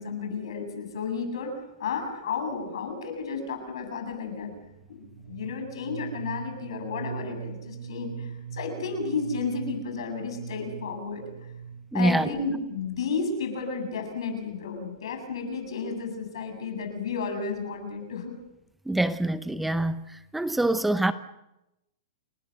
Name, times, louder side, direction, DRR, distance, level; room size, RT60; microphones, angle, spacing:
voice 1, 0.0-1.5 1.8-4.5 4.9-11.2 11.9-18.3, left 5 dB, 75° left, 7.9 m, -32 dB
sound 1, 4.5-12.2, right 7 dB, 85° right, 6.4 m, -41 dB
voice 2, 11.9-12.4 18.9-20.0 20.3-21.1, right 1 dB, 5° right, 0.8 m, -25 dB
30.0 x 21.5 x 6.7 m
hypercardioid pair, 145°, 3 cm